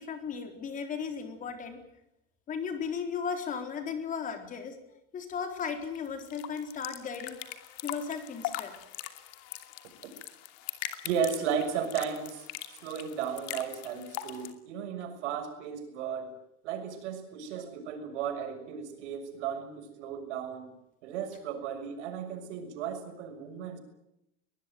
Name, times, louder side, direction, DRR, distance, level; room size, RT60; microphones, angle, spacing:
voice 1, 0.0-1.8 2.5-4.8 5.1-7.4 7.8-8.7, left 6 dB, 25° left, 6 dB, 4.0 m, -35 dB
sound 1, 5.6-14.5, left 14 dB, 45° left, 2.7 m, -41 dB
voice 2, 11.0-12.5 12.8-16.3 16.6-20.7 21.0-23.8, right 7 dB, 80° right, 8 dB, 6.5 m, -35 dB
23.0 x 21.0 x 9.2 m, 0.83 s
supercardioid pair, 165°, 34 cm